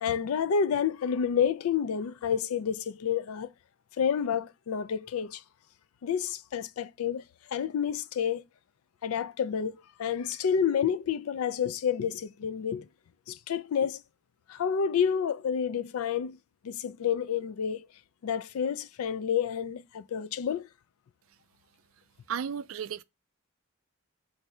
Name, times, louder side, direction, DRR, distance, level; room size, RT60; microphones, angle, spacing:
voice 1, 0.0-3.5 4.0-5.4 6.0-7.2 7.5-8.4 9.0-12.9 13.3-14.0 14.5-16.4 16.6-17.9 18.2-20.7, left 7 dB, 85° left, 0.4 m, -29 dB
voice 2, 22.3-23.0, right 7 dB, 70° right, 0.4 m, -34 dB
4.1 x 2.6 x 4.7 m
head